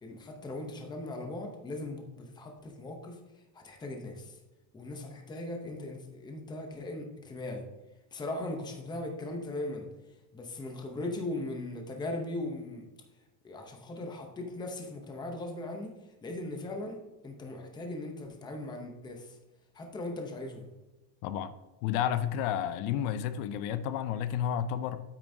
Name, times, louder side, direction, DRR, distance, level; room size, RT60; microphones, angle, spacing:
voice 1, 0.0-3.2 3.5-4.4 4.7-7.6 8.1-9.9 10.3-12.9 13.4-15.9 16.2-19.4 19.7-20.7, left 2 dB, 10° left, 3 dB, 0.7 m, -39 dB
voice 2, 21.2-21.5 21.8-25.0, left 9 dB, 65° left, 12 dB, 0.7 m, -31 dB
9.0 x 8.6 x 2.7 m, 1.1 s
cardioid pair, 175°, 50 cm